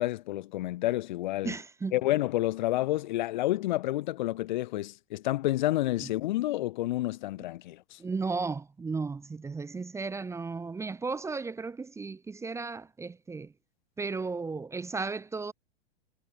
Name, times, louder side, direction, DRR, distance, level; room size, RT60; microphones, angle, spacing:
voice 1, 0.0-1.5 1.9-8.0, left 16 dB, 50° left, 1.5 m, -29 dB
voice 2, 1.4-1.9 8.0-13.5 14.0-15.5, right 4 dB, 10° right, 1.2 m, -34 dB
figure-of-eight pair, 95°, 30 cm